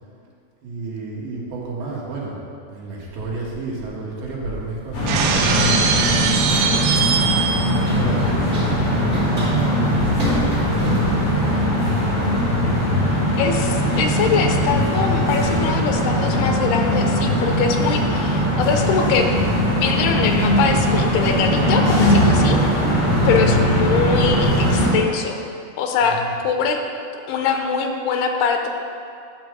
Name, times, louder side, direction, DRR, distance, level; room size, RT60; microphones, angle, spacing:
voice 1, 0.6-2.4 2.7-6.7 7.5-11.6 26.0-26.4, right 3 dB, 65° right, -5 dB, 3.4 m, -32 dB
Run, 4.5-12.4, left 1 dB, 25° right, 1.6 m, -32 dB
sound 1, 4.9-24.9, equal, 55° left, 3.8 m, -20 dB
Shatter, 5.1-7.8, right 6 dB, 85° right, 3.0 m, -21 dB
voice 2, 13.4-19.3 19.8-22.6 23.3-25.4 25.8-26.8 27.3-28.7, left 5 dB, 80° left, 4 dB, 2.7 m, -22 dB
10.0 x 6.1 x 6.2 m, 2.4 s
omnidirectional pair, 4.9 m